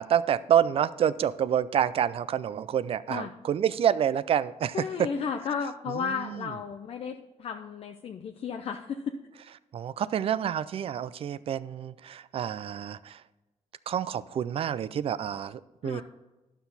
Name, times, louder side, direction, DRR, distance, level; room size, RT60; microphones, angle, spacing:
voice 1, 0.0-4.9 5.9-6.5 9.7-13.2 13.9-16.0, right 9 dB, 55° right, 17 dB, 0.3 m, -28 dB
voice 2, 4.7-9.2 15.8-16.0, left 6 dB, 55° left, 4 dB, 0.5 m, -33 dB
11.5 x 6.0 x 4.0 m, 1.1 s
wide cardioid pair, 150°, 12 cm